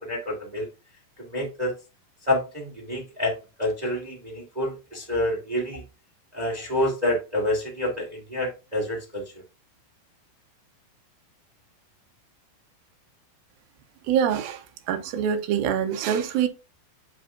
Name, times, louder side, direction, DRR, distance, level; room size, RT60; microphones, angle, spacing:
voice 1, 0.0-0.7 1.3-1.7 2.3-5.8 6.3-9.2, left 1 dB, 40° right, 0.5 m, -28 dB
voice 2, 14.1-16.5, right 8 dB, 75° right, 2.5 m, -25 dB
7.6 x 6.2 x 2.4 m
omnidirectional pair, 4.6 m